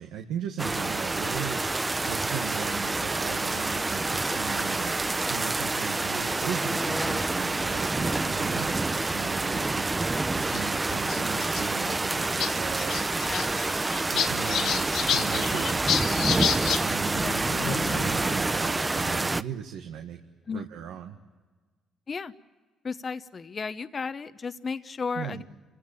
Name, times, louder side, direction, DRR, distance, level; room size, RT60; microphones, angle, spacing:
voice 1, 0.0-1.6 2.0-4.9 5.3-9.9 10.3-13.0 14.1-20.2 20.5-21.2 25.1-25.4, right 8 dB, 85° right, 5 dB, 1.5 m, -38 dB
sound 1, 0.6-19.4, right 2 dB, 20° right, 0.7 m, -28 dB
sound 2, 4.9-8.7, equal, 5° left, 1.5 m, -41 dB
sound 3, 7.8-8.1 9.0-9.1 9.3-9.4 10.5-10.6 11.0-11.6 11.9-12.0 12.2-12.5 12.8-16.8 17.1-18.2, left 8 dB, 75° left, 2.0 m, -30 dB
voice 2, 22.8-25.4, left 5 dB, 40° left, 11 dB, 0.9 m, -34 dB
28.0 x 16.5 x 8.8 m, 1.4 s
supercardioid pair, 70°, 0 cm